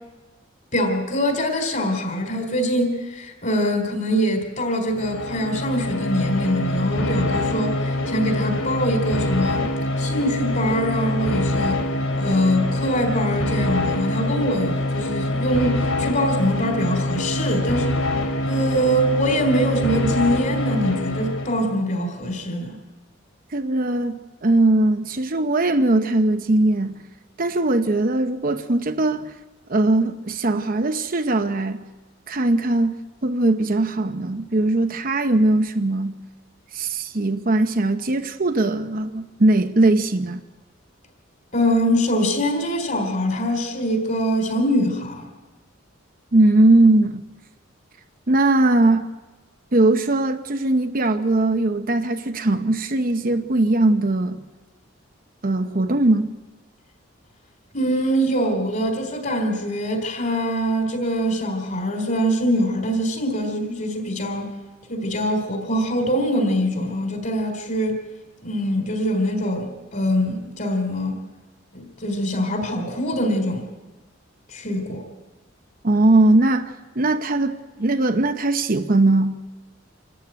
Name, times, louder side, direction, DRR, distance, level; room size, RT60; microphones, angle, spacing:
voice 1, 0.7-9.7 10.0-11.8 12.1-18.0 18.2-22.8 41.5-45.2 57.7-64.5 64.9-68.0 68.4-71.2 71.7-73.6 74.5-75.0, equal, 40° left, 4.1 m, -23 dB
sound 1, 4.9-21.8, left 1 dB, 85° left, 3.1 m, -25 dB
voice 2, 23.5-27.0 27.4-29.3 29.7-31.8 32.3-33.0 33.2-36.2 36.7-40.4 46.3-47.2 48.3-49.1 49.7-54.4 55.4-56.3 75.8-79.4, right 2 dB, 45° right, 0.9 m, -20 dB
27.0 x 14.0 x 9.4 m
head